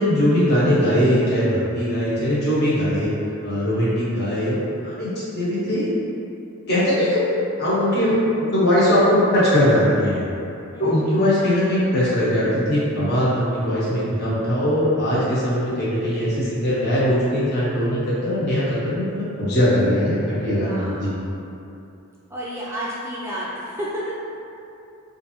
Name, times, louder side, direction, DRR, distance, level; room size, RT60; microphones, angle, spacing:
voice 1, 0.0-3.1 3.4-5.1 5.3-5.9 6.7-7.2 7.6-10.2 10.8-21.1, equal, 50° left, -9 dB, 1.0 m, -20 dB
voice 2, 3.7-4.0 10.7-11.5 20.6-21.2 22.3-24.2, equal, 10° right, -7 dB, 0.4 m, -32 dB
3.3 x 2.6 x 2.8 m, 2.7 s
head